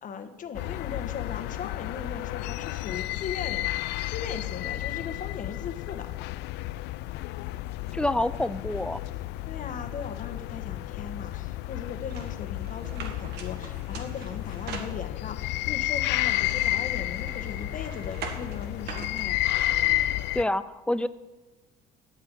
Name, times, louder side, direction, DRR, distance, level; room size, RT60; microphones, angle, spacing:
voice 1, 0.0-3.7 4.1-6.1 9.4-19.5, left 6 dB, 50° left, 8 dB, 1.4 m, -38 dB
sound 1, 0.5-20.4, left 16 dB, 85° left, 0.4 m, -31 dB
voice 2, 7.9-9.0 20.3-21.1, left 1 dB, 5° left, 14 dB, 0.5 m, -27 dB
sound 2, 12.1-15.4 16.0-19.9, right 5 dB, 75° right, 2.1 m, -43 dB
14.0 x 5.7 x 9.2 m, 1.2 s
cardioid pair, 110°, 17 cm